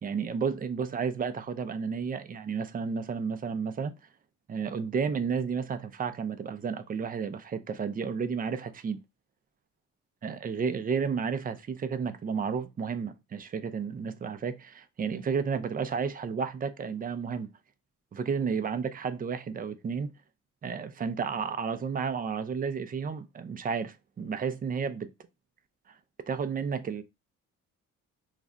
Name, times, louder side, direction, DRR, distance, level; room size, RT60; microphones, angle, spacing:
voice 1, 0.0-3.9 4.5-9.0 10.2-17.5 18.1-20.1 20.6-25.1 26.3-27.0, right 6 dB, 30° right, 0.4 m, -32 dB
2.5 x 2.1 x 3.6 m
cardioid pair, 90°, 30 cm